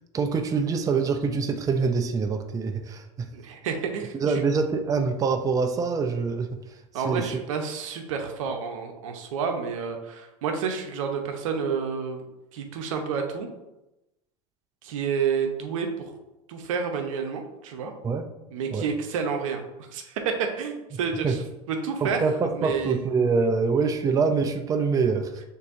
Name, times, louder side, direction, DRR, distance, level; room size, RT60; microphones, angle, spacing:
voice 1, 0.1-3.3 4.1-7.3 18.0-18.3 18.7-18.9 21.2-21.4 22.0-25.4, right 5 dB, 20° right, 6 dB, 0.4 m, -25 dB
voice 2, 3.3-4.1 6.9-12.3 12.5-13.5 14.8-16.1 16.5-17.9 18.5-19.6 19.9-22.2 22.5-23.1, right 6 dB, 85° right, 4 dB, 0.7 m, -29 dB
6.4 x 2.7 x 2.5 m, 0.96 s
supercardioid pair, 110°, 17 cm